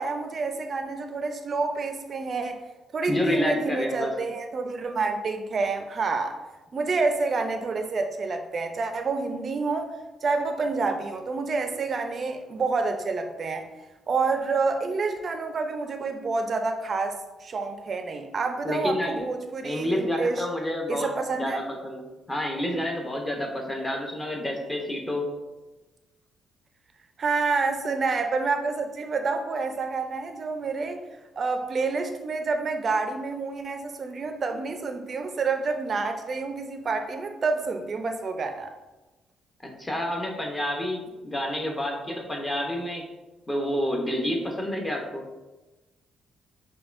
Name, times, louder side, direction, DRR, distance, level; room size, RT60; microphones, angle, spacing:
voice 1, 0.0-2.6 2.9-6.4 6.7-9.9 10.2-13.7 14.1-20.5 20.9-21.6 27.2-31.0 31.4-38.7, right 4 dB, 45° right, 6 dB, 0.4 m, -28 dB
voice 2, 3.1-4.1 18.6-19.2 19.6-21.1 21.4-22.0 22.3-25.3 39.8-43.0 43.5-45.2, left 1 dB, 20° left, 1 dB, 0.7 m, -29 dB
5.3 x 2.2 x 2.5 m, 1.1 s
cardioid pair, 90°, 0 cm